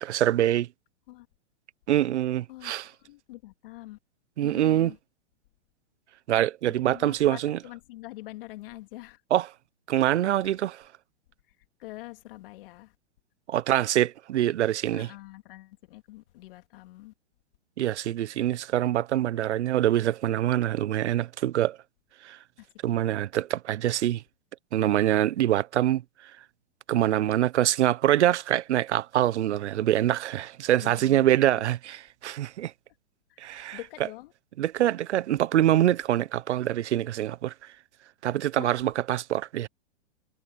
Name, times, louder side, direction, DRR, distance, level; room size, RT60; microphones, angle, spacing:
voice 1, 0.0-0.7 1.9-2.9 4.4-4.9 6.3-7.6 9.3-9.5 9.9-10.8 13.5-15.1 17.8-21.8 22.2-22.4 22.8-24.2 24.7-26.0 26.9-32.7 33.4-33.8 34.6-37.5 38.2-39.7, right 12 dB, 80° right, 0.8 m, -25 dB
voice 2, 3.0-4.0 4.4-5.0 6.9-9.2 10.4-10.5 11.8-12.9 14.9-17.1 22.6-23.0 30.8-31.3 33.3-34.3 38.6-38.8, left 18 dB, 55° left, 2.4 m, -44 dB
hypercardioid pair, 140°, 34 cm